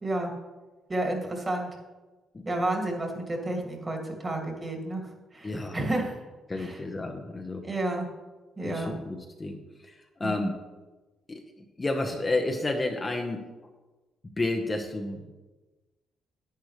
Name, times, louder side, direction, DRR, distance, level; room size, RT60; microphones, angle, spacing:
voice 1, 0.0-0.3 0.9-1.7 2.4-6.2 6.6-6.8 7.6-8.1 8.6-8.9 10.2-10.5, right 1 dB, 25° right, 0 dB, 2.4 m, -31 dB
voice 2, 5.4-5.8 6.5-7.6 8.6-9.9 10.2-10.5 11.3-11.4 11.8-13.4 14.4-15.2, left 2 dB, 25° left, 3 dB, 1.0 m, -31 dB
10.5 x 9.2 x 3.3 m, 1.2 s
cardioid pair, 90°, 0 cm